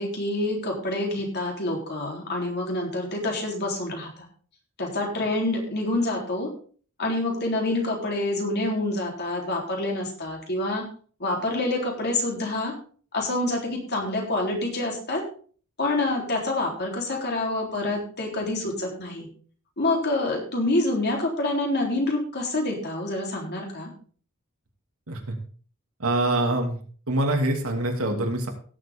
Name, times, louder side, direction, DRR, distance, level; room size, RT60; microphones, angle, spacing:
voice 1, 0.0-4.1 4.8-6.5 7.0-10.8 11.2-12.7 13.1-15.2 15.8-19.3 19.8-23.9, left 2 dB, 50° left, 0 dB, 3.7 m, -27 dB
voice 2, 26.0-26.8 27.1-28.5, right 1 dB, 75° right, 3 dB, 2.7 m, -25 dB
17.5 x 7.8 x 3.7 m, 0.43 s
head